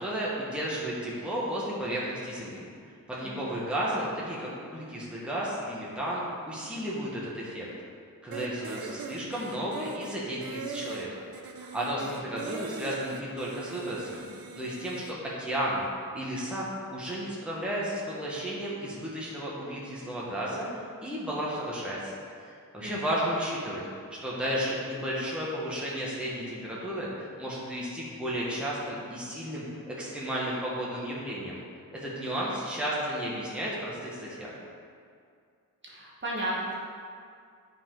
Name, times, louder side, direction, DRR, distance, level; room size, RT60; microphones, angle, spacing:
voice 1, 0.0-2.7 3.1-7.7 8.2-11.2 11.6-14.2 14.5-15.9 16.1-22.1 22.4-23.8 24.1-31.6 31.9-34.5, equal, 5° right, -7 dB, 1.3 m, -33 dB
voice 2, 3.2-3.6 12.0-12.6 22.8-23.1 35.8-36.7, right 1 dB, 35° right, -6 dB, 1.3 m, -36 dB
sound 1, 8.3-15.1, right 5 dB, 85° right, 0.7 m, -41 dB
11.5 x 5.0 x 3.8 m, 2.3 s
wide cardioid pair, 175°, 35 cm